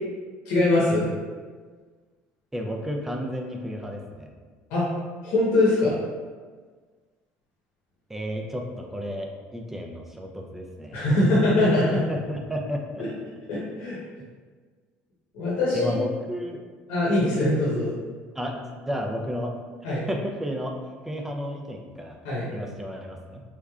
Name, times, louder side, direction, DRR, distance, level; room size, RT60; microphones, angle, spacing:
voice 1, 0.4-1.1 4.7-4.9 5.2-6.0 10.9-12.0 13.0-13.1 13.5-14.0 15.3-15.9 16.9-18.0 19.8-20.1 22.2-22.5, left 2 dB, 90° left, -7 dB, 0.9 m, -22 dB
voice 2, 2.5-4.3 8.1-11.0 12.1-13.0 15.7-16.6 18.4-19.5 19.9-20.7 21.1-22.2 22.5-23.4, equal, 5° right, 2 dB, 0.4 m, -32 dB
3.6 x 3.1 x 2.3 m, 1.5 s
cardioid pair, 130°, 5 cm